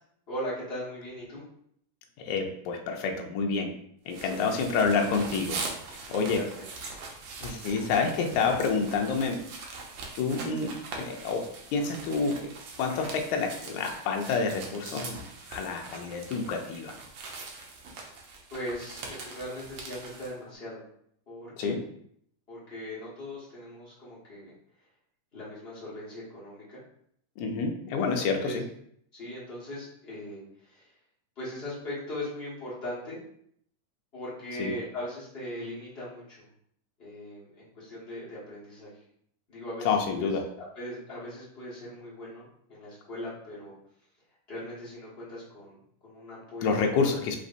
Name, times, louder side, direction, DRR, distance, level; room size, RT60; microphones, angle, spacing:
voice 1, 0.3-1.4 4.2-4.5 6.3-6.7 18.5-20.8 21.3-21.8 22.5-24.5 25.3-26.8 28.0-28.6 29.1-30.9 31.3-33.2 34.1-36.5 37.0-39.0 39.5-40.3 40.7-43.7 44.5-45.7 46.0-46.8, equal, 40° left, -8 dB, 0.9 m, -39 dB
voice 2, 2.2-3.7 4.1-5.6 6.1-6.4 7.4-9.4 10.2-11.4 11.7-12.3 12.8-15.2 15.5-16.9 21.6-21.8 27.4-28.6 34.6-34.7 39.9-40.4 46.6-47.4, left 4 dB, 75° left, 2 dB, 2.0 m, -28 dB
sound 1, 4.1-20.3, right 3 dB, 75° right, 1.4 m, -42 dB
5.3 x 3.3 x 2.6 m, 0.68 s
omnidirectional pair, 3.6 m